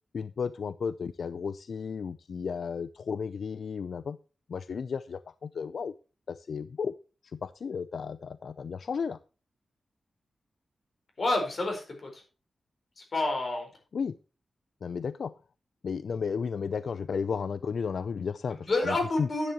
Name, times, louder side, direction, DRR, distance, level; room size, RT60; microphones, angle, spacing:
voice 1, 0.1-4.2 4.5-5.9 6.3-6.9 7.3-9.2 13.9-14.2 14.8-15.3 15.8-19.3, left 6 dB, 70° left, 14 dB, 0.5 m, -33 dB
voice 2, 11.2-12.2 13.0-13.7 18.6-19.5, left 2 dB, 45° left, 3 dB, 4.7 m, -29 dB
10.5 x 10.5 x 3.0 m, 0.33 s
wide cardioid pair, 165°, 0 cm